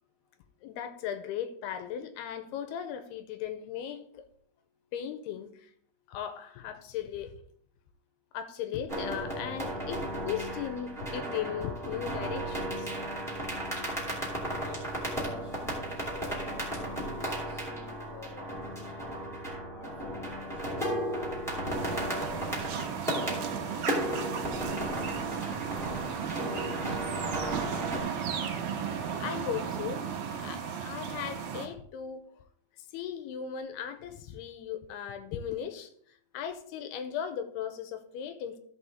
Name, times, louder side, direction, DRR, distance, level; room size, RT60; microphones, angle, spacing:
voice 1, 0.6-4.3 4.9-5.7 6.1-7.4 8.3-12.9 13.7-13.9 14.3-14.4 26.0-26.1 29.2-30.1 30.3-32.3 32.9-38.6, left 9 dB, 85° left, 9 dB, 2.7 m, -37 dB
sound 1, 8.9-28.0, equal, ahead, 1.4 m, -35 dB
voice 2, 14.4-19.2 19.7-22.5 23.1-25.4, left 2 dB, 25° right, -2 dB, 2.4 m, -48 dB
sound 2, 21.7-31.7, right 7 dB, 70° right, 2.6 m, -35 dB
14.0 x 5.4 x 3.6 m, 0.63 s
omnidirectional pair, 4.7 m